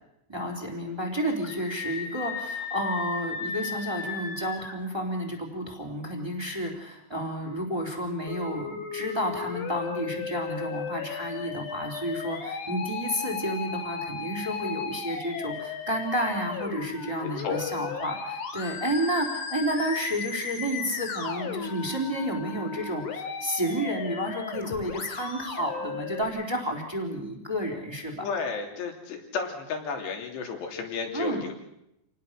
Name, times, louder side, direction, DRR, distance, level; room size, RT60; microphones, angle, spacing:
voice 1, 0.3-28.3 31.1-31.4, equal, 5° right, 2 dB, 3.5 m, -31 dB
Screaming, 1.4-4.8, left 6 dB, 85° left, 5.4 m, -35 dB
Musical instrument, 8.3-26.2, left 5 dB, 50° left, 3.3 m, -35 dB
voice 2, 17.2-17.7 28.2-31.5, left 5 dB, 70° left, 3 dB, 5.2 m, -33 dB
28.0 x 19.5 x 6.6 m, 0.83 s
omnidirectional pair, 5.1 m